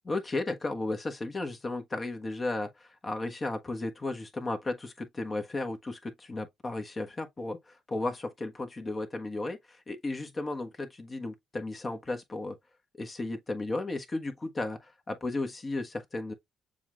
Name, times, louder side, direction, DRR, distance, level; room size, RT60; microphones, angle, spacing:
voice 1, 0.0-7.6 7.9-9.6 9.9-12.6 13.0-16.3, left 2 dB, 30° left, 1.2 m, -34 dB
6.9 x 2.5 x 3.1 m
cardioid pair, 90°, 0 cm